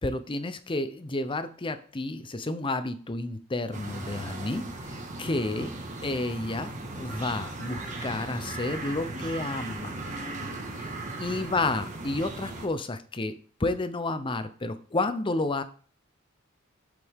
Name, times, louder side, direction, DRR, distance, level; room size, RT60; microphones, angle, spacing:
voice 1, 0.0-5.7 6.0-10.0 10.7-10.9 11.2-13.3 13.6-15.6, left 2 dB, 25° left, 11 dB, 0.6 m, -31 dB
sound 1, 3.7-12.7, right 2 dB, 35° right, 1.5 m, -37 dB
8.3 x 7.1 x 3.6 m, 0.42 s
head